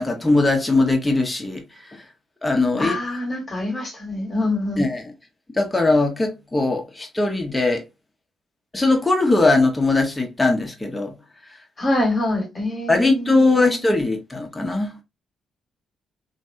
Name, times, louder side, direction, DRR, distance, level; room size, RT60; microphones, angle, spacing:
voice 1, 0.0-1.6 1.9-2.0 2.4-3.0 4.8-5.0 5.5-7.8 8.7-11.1 12.9-15.0, left 2 dB, 15° left, 1.3 m, -20 dB
voice 2, 2.8-4.9 11.8-13.8, left 1 dB, 35° left, 1.7 m, -25 dB
3.0 x 2.8 x 2.7 m
hypercardioid pair, 45°, 0 cm